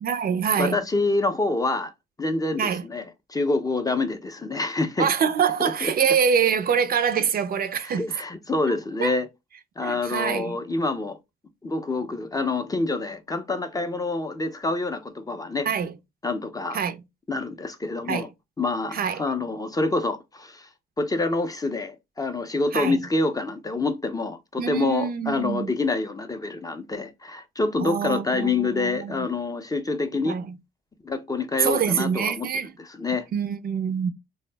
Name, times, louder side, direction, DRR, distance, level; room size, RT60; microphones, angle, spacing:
voice 1, 0.0-0.8 2.6-2.8 5.0-8.0 9.0-9.2 9.8-10.6 15.7-15.9 16.7-17.0 18.0-18.3 18.9-19.2 22.7-23.0 24.6-25.7 27.8-29.3 30.1-30.6 31.6-32.7 33.3-34.1, right 7 dB, 50° right, 0.4 m, -25 dB
voice 2, 0.6-1.9 2.2-3.0 3.3-5.1 5.6-5.9 7.8-9.3 9.8-11.2 11.6-15.7 16.2-16.8 17.3-18.3 18.6-20.7 21.0-30.4 31.0-32.5 32.8-33.3, left 3 dB, 20° left, 0.4 m, -27 dB
2.6 x 2.0 x 3.2 m
cardioid pair, 90°, 20 cm